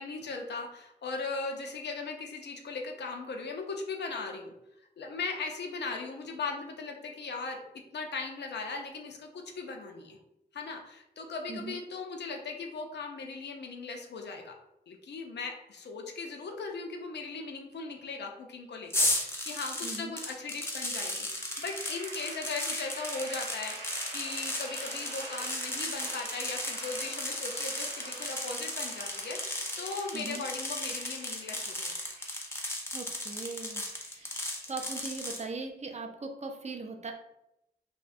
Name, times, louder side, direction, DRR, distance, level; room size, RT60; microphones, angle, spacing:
voice 1, 0.0-7.6 7.9-10.2 10.5-14.5 14.9-31.9, left 4 dB, 75° left, 3 dB, 0.4 m, -38 dB
sound 1, 18.9-35.4, left 1 dB, 15° left, 0.5 m, -35 dB
voice 2, 19.8-20.1 30.1-30.5 32.9-37.1, right 3 dB, 40° right, 3 dB, 0.4 m, -40 dB
sound 2, 21.3-35.1, right 2 dB, 85° right, 0.7 m, -46 dB
2.6 x 2.1 x 2.4 m, 0.85 s
cardioid pair, 55°, 18 cm